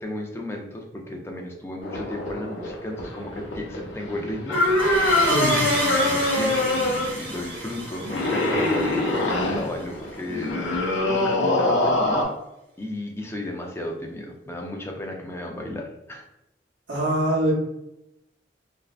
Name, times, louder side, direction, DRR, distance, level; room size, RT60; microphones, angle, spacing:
voice 1, 0.0-4.6 5.6-12.3 12.8-16.3, left 1 dB, 15° left, 1 dB, 0.3 m, -34 dB
sound 1, 1.8-12.2, left 2 dB, 80° left, 0.5 m, -24 dB
sound 2, 4.5-9.8, right 2 dB, 60° right, 0.9 m, -31 dB
voice 2, 16.9-17.5, right 1 dB, 90° right, -4 dB, 0.9 m, -23 dB
2.5 x 2.0 x 2.4 m, 0.86 s
head